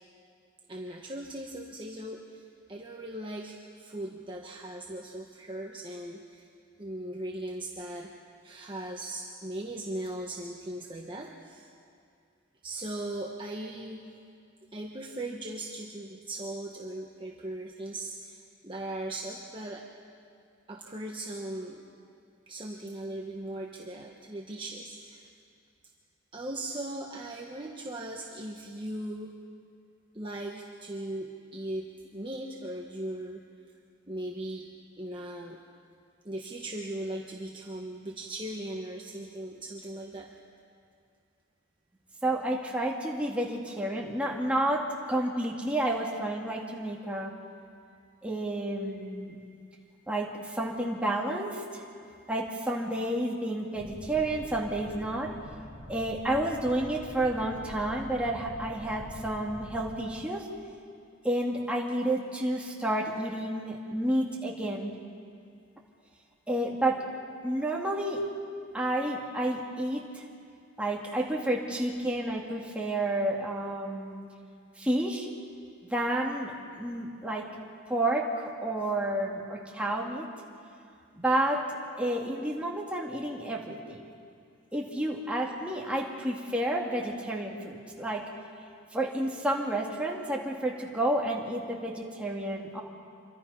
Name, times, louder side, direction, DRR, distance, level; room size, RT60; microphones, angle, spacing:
voice 1, 0.7-6.5 6.8-8.1 8.4-11.7 12.6-14.1 14.7-19.9 20.7-21.9 22.5-25.3 26.3-29.4 30.1-33.4 34.1-34.7 35.0-35.6 36.2-40.3 48.8-49.6 50.5-50.6 51.9-52.3, right 1 dB, 25° right, -1 dB, 1.2 m, -39 dB
voice 2, 42.2-47.3 48.2-49.4 50.1-51.8 52.3-55.3 55.9-60.5 61.2-65.0 66.5-67.1 67.4-68.3 68.7-70.2 70.8-74.3 74.8-75.3 75.9-77.5 77.9-80.3 81.2-84.1 84.7-88.2 88.9-92.8, right 1 dB, 5° right, -2 dB, 2.1 m, -30 dB
sound 1, 53.7-60.0, equal, 30° left, 5.4 m, -45 dB
26.5 x 24.0 x 5.6 m, 2.4 s
head